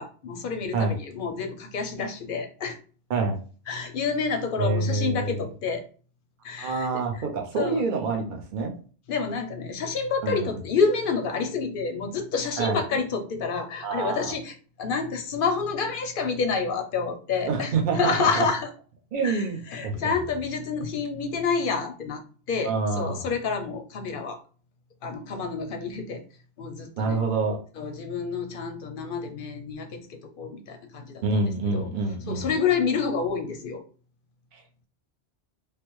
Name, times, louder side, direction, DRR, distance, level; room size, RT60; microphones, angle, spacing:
voice 1, 0.0-2.8 3.7-5.8 6.4-6.9 7.1-7.2 7.6-7.8 9.1-18.7 19.2-22.2 22.5-24.4 25.0-26.2 26.6-27.2 27.8-31.9 32.3-33.8, left 5 dB, 60° left, 6 dB, 0.6 m, -28 dB
voice 2, 4.6-5.4 6.6-8.7 10.2-10.5 12.6-12.8 13.8-14.3 17.4-18.5 19.1-19.9 22.6-23.3 27.0-27.6 31.2-32.5 34.5-34.6, right 4 dB, 50° right, 3 dB, 0.7 m, -27 dB
3.2 x 2.1 x 3.0 m, 0.39 s
omnidirectional pair, 1.1 m